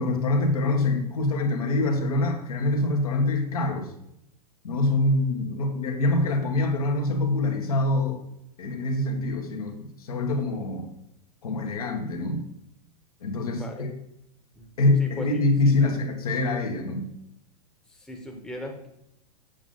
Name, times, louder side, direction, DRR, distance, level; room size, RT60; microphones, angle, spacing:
voice 1, 0.0-3.9 4.6-8.2 8.6-10.9 11.4-12.4 13.2-13.9 14.8-17.1, left 2 dB, 60° left, 2 dB, 1.8 m, -25 dB
voice 2, 13.5-13.8 14.5-14.7 15.0-15.3 15.8-15.9 17.9-18.9, left 1 dB, 5° left, 1 dB, 1.3 m, -38 dB
8.4 x 7.4 x 3.8 m, 0.79 s
figure-of-eight pair, 100°, 21 cm